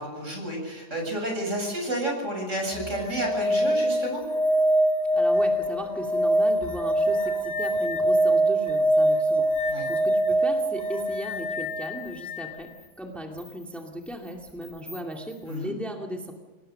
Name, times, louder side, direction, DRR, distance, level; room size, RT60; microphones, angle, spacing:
voice 1, 0.0-4.2 9.7-9.9 15.5-15.7, right 1 dB, 60° right, 1 dB, 8.2 m, -31 dB
sound 1, 2.7-12.5 14.9-15.0, right 1 dB, 30° left, 1.8 m, -24 dB
voice 2, 5.1-12.7 13.0-16.3, equal, ahead, 1 dB, 2.3 m, -36 dB
27.5 x 18.5 x 6.7 m, 1.3 s
omnidirectional pair, 1.5 m